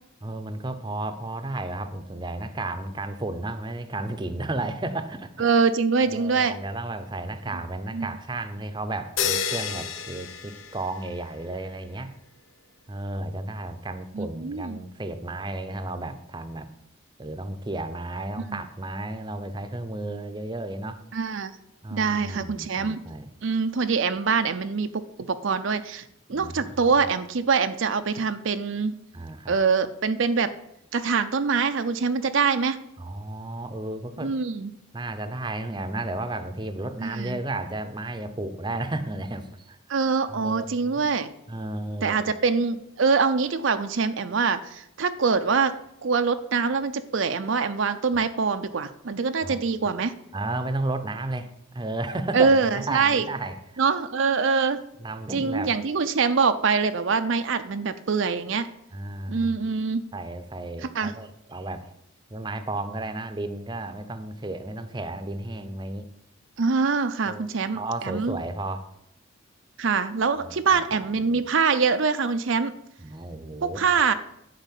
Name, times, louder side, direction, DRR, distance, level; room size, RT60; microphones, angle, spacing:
voice 1, 0.2-5.3 6.0-12.1 12.9-16.7 17.2-21.0 21.8-23.3 26.3-27.1 29.1-29.6 33.0-34.3 34.9-40.0 40.3-41.0 41.5-42.3 49.4-49.6 50.3-53.6 55.0-55.7 58.9-59.7 60.1-61.9 62.3-66.1 67.3-67.5 67.7-68.9 70.4-71.4 73.0-73.9, right 2 dB, 20° right, 9 dB, 0.7 m, -33 dB
voice 2, 5.4-6.6 7.9-8.1 14.1-14.8 18.5-18.6 21.1-21.5 21.9-23.0 23.4-26.0 26.3-28.9 29.5-30.5 30.9-32.8 34.2-34.7 37.0-37.4 39.9-41.3 42.0-45.7 46.0-50.2 52.3-53.3 53.8-54.8 55.3-58.7 59.3-60.0 60.8-61.1 66.6-68.4 69.8-72.7 73.6-74.1, right 5 dB, 65° right, 9 dB, 0.6 m, -24 dB
sound 1, 9.2-11.3, left 7 dB, 70° left, 1.0 m, -30 dB
10.5 x 5.0 x 8.3 m, 0.78 s
head